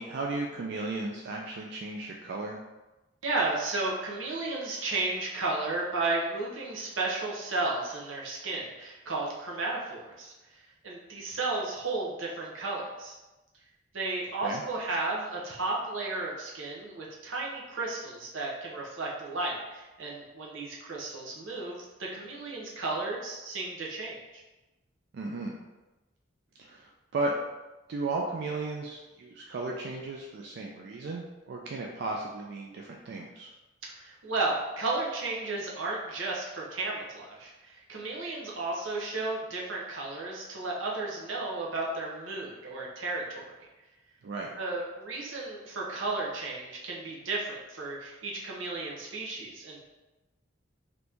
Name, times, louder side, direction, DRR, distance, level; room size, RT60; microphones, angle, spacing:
voice 1, 0.0-2.6 14.4-14.6 25.1-25.5 26.6-27.3 27.9-33.5 44.2-44.5, right 2 dB, 60° right, 0 dB, 0.3 m, -35 dB
voice 2, 3.2-13.1 13.9-24.4 33.9-43.7 44.6-49.8, right 2 dB, 90° right, -3 dB, 0.8 m, -33 dB
3.0 x 2.6 x 3.4 m, 1.1 s
head